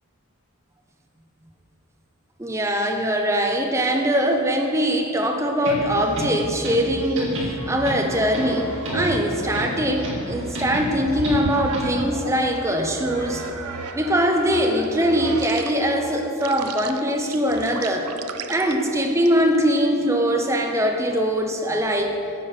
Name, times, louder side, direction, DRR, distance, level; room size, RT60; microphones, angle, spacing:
voice 1, 2.4-13.4 13.9-18.1 18.5-22.2, equal, 15° right, 2 dB, 0.6 m, -22 dB
sound 1, 5.6-12.1, equal, 60° right, 2.0 m, -31 dB
sound 2, 7.5-12.4 13.0-19.6, right 4 dB, 90° right, 0.5 m, -36 dB
sound 3, 7.9-15.4, equal, 50° left, 2.2 m, -40 dB
9.7 x 4.6 x 7.1 m, 2.7 s
head